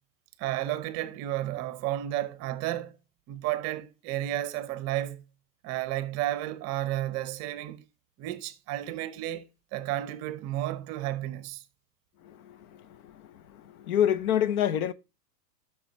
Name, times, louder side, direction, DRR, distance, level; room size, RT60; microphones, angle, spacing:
voice 1, 0.4-2.9 3.3-5.2 5.6-7.8 8.2-11.6, right 14 dB, 35° right, 0.8 m, -32 dB
voice 2, 12.2-14.9, left 10 dB, 60° left, 0.8 m, -28 dB
12.5 x 6.1 x 3.1 m
hypercardioid pair, 115°, 48 cm